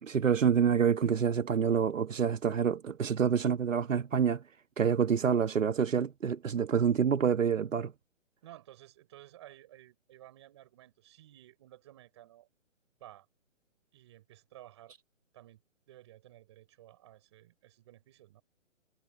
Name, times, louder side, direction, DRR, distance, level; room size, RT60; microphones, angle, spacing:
voice 1, 0.0-4.4 4.8-7.9, right 7 dB, 80° right, 1.3 m, -27 dB
voice 2, 8.4-12.5 13.0-13.3 13.9-14.9 15.3-15.6 15.9-18.4, right 14 dB, 20° right, 6.1 m, -54 dB
hypercardioid pair, 180°, 38 cm